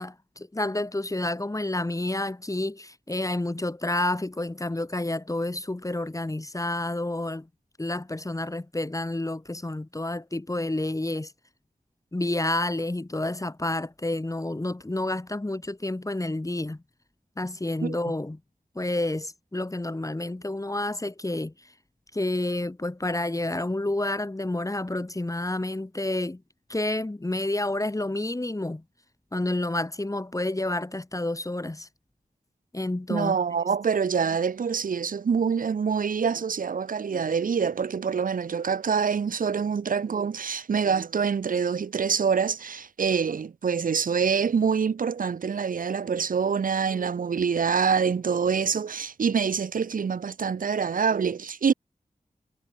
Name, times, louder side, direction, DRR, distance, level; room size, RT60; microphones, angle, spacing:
voice 1, 0.0-7.5 7.8-11.3 12.1-16.8 17.4-18.4 18.8-21.5 22.1-26.4 26.7-28.8 29.3-31.9 32.7-33.4, left 2 dB, 25° left, 2.1 m, -29 dB
voice 2, 33.1-51.7, right 6 dB, 75° right, 0.8 m, -25 dB
wide cardioid pair, 65°, 14 cm